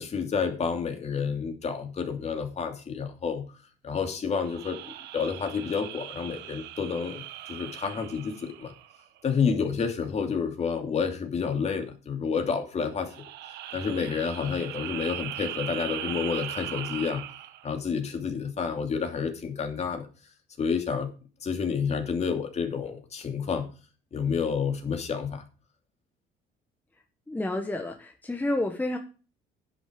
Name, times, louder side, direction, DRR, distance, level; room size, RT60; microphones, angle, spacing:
voice 1, 0.0-3.5 3.8-8.7 9.2-13.1 13.7-17.2 17.6-20.1 20.6-21.1 21.4-23.7 24.1-25.4, left 6 dB, 40° left, 5 dB, 2.8 m, -29 dB
sound 1, 4.4-9.2 13.0-17.7, right 13 dB, 90° right, 1.0 m, -39 dB
voice 2, 27.3-29.0, left 1 dB, 10° left, 4 dB, 1.3 m, -30 dB
10.5 x 8.2 x 5.2 m, 0.35 s
cardioid pair, 110°, 17 cm